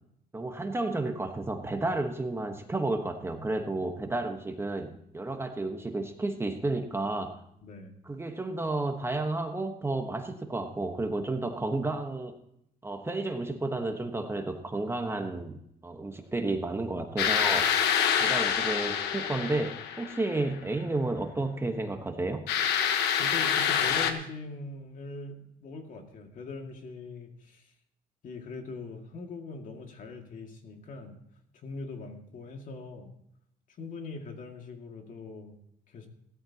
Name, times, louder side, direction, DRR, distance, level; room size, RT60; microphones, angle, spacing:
voice 1, 0.3-7.4 8.1-12.4 12.8-15.6 15.8-17.7 18.2-22.4, right 2 dB, 15° right, 5 dB, 1.2 m, -32 dB
voice 2, 7.6-7.9 23.1-27.7 28.2-31.1 31.6-33.1 33.8-35.6 35.9-36.1, left 3 dB, 50° left, 3 dB, 2.2 m, -41 dB
sound 1, 17.2-20.4 22.5-24.1, left 8 dB, 85° left, 1.2 m, -26 dB
16.5 x 13.5 x 2.9 m, 0.75 s
cardioid pair, 110°, 17 cm